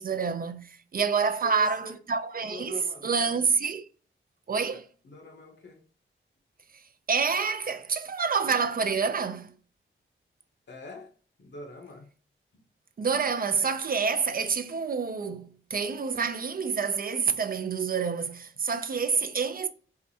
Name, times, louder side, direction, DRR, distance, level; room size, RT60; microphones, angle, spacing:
voice 1, 0.0-3.9 4.5-4.9 6.7-6.8 7.1-9.5 13.0-19.7, right 5 dB, 45° right, 0.4 m, -28 dB
voice 2, 1.4-1.9 2.4-3.4 5.0-5.8 10.7-11.1 11.4-12.1, left 2 dB, 55° left, 0.9 m, -44 dB
4.5 x 2.1 x 2.7 m
wide cardioid pair, 85°, 21 cm